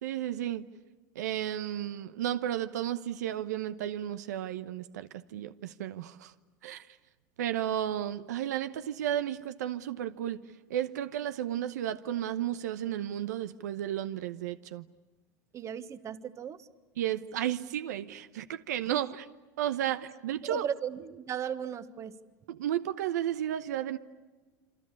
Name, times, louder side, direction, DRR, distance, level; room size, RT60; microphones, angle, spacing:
voice 1, 0.0-0.7 1.1-6.3 6.6-6.9 7.4-10.4 10.7-14.9 17.0-19.2 19.6-20.7 22.5-24.0, right 11 dB, 85° right, 11 dB, 1.0 m, -33 dB
voice 2, 15.5-16.7 18.9-19.0 20.4-22.2, right 8 dB, 35° right, 12 dB, 1.4 m, -36 dB
27.5 x 25.0 x 8.5 m, 1.3 s
supercardioid pair, 110°, 9 cm